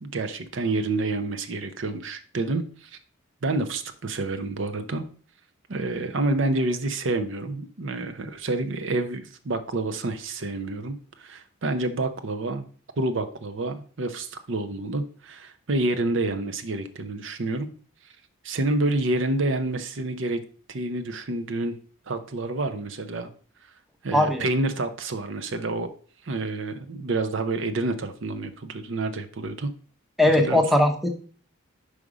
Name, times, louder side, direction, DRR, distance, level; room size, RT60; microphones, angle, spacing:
voice 1, 0.0-3.0 3.4-5.0 5.7-12.6 13.0-17.7 18.4-20.4 20.7-21.8 22.1-23.3 24.0-25.9 26.2-29.7 30.3-30.6, right 2 dB, 65° right, 8 dB, 0.6 m, -28 dB
voice 2, 24.1-24.4 30.2-31.1, left 1 dB, ahead, 4 dB, 0.7 m, -19 dB
5.3 x 4.9 x 4.8 m, 0.42 s
head